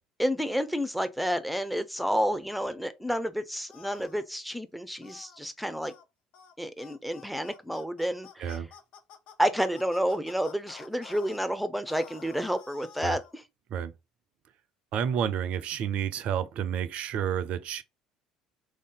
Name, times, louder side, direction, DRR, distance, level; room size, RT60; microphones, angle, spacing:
voice 1, 0.2-5.9 6.6-8.6 9.4-13.4, equal, ahead, 0.5 m, -30 dB
sound 1, 3.7-4.2 5.0-5.4 5.8-6.0 6.3-6.5 6.8-11.4 11.9-13.3, left 7 dB, 55° left, 0.7 m, -50 dB
voice 2, 14.9-17.8, right 8 dB, 50° right, 0.4 m, -30 dB
3.2 x 2.7 x 3.7 m
figure-of-eight pair, 60°, 3 cm